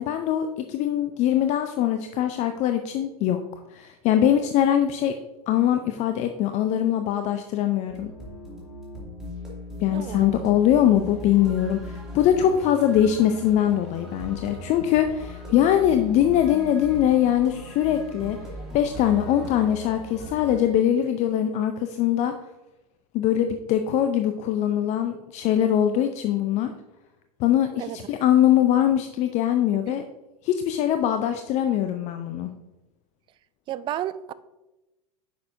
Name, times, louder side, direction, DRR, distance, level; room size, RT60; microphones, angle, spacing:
voice 1, 0.0-3.4 3.7-5.2 5.5-8.1 9.8-18.4 18.7-22.3 23.1-26.7 27.4-30.0 30.4-32.5, left 10 dB, 35° left, 0.5 m, -22 dB
sound 1, 7.9-20.6, left 1 dB, 5° right, 2.3 m, -39 dB
voice 2, 9.9-10.5 27.7-28.0 33.7-34.3, right 12 dB, 25° right, 0.3 m, -32 dB
9.3 x 6.3 x 2.6 m
figure-of-eight pair, 85°, 19 cm